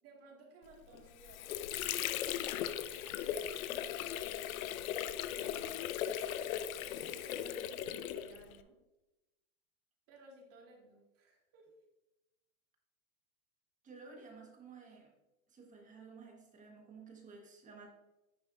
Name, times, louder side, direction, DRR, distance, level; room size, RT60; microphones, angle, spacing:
voice 1, 0.0-5.0 5.3-6.1 7.0-8.8 10.1-11.7, right 2 dB, 35° right, -1 dB, 2.2 m, -59 dB
Water / Sink (filling or washing), 0.9-8.6, left 10 dB, 75° left, 0.7 m, -38 dB
voice 2, 13.8-15.1 15.5-17.9, right 4 dB, 20° right, 1 dB, 1.5 m, -53 dB
10.0 x 6.1 x 2.6 m, 0.99 s
supercardioid pair, 140°, 42 cm